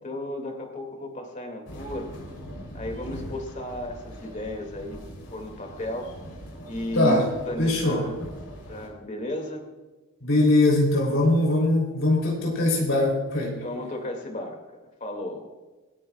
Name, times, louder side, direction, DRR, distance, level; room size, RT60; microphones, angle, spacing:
voice 1, 0.0-2.1 2.7-5.0 5.3-6.1 6.7-8.2 8.7-9.6 13.6-15.5, left 1 dB, 35° left, 3 dB, 2.3 m, -34 dB
sound 1, 1.7-8.9, equal, 85° left, 3.6 m, -42 dB
voice 2, 7.6-8.1 10.2-13.6, left 2 dB, 65° left, -1 dB, 3.4 m, -21 dB
27.0 x 10.0 x 2.4 m, 1.2 s
head